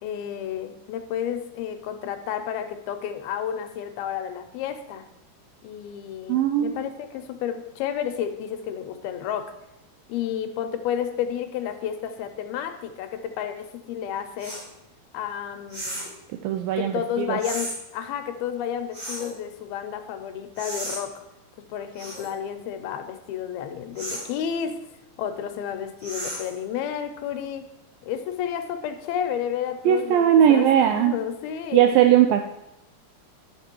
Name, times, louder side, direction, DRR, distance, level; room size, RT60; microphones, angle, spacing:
voice 1, 0.0-5.1 5.6-9.5 10.1-14.6 15.1-16.1 16.8-21.1 21.7-24.8 25.2-27.7 28.0-31.9, left 9 dB, 80° left, 7 dB, 2.6 m, -31 dB
voice 2, 6.3-6.8 16.4-17.4 29.9-31.2 31.7-32.4, right 10 dB, 85° right, 6 dB, 2.0 m, -19 dB
sound 1, 14.4-14.7 15.7-16.2 17.4-17.8 18.9-19.3 20.6-21.0 22.0-22.3 24.0-24.3 26.0-26.6, right 1 dB, 40° right, 5.4 m, -34 dB
11.0 x 6.7 x 4.5 m, 0.87 s
omnidirectional pair, 4.6 m